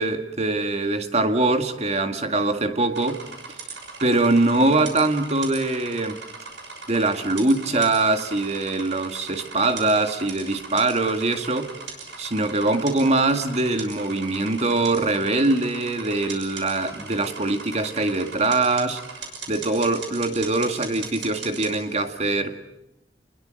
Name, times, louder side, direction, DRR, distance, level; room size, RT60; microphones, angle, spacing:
voice 1, 0.0-3.2 4.0-6.2 6.9-11.7 12.2-19.0 19.5-22.6, right 2 dB, 40° right, 2.0 m, -23 dB
sound 1, 2.9-21.8, right 5 dB, 90° right, 6.3 m, -39 dB
28.5 x 21.5 x 7.8 m
head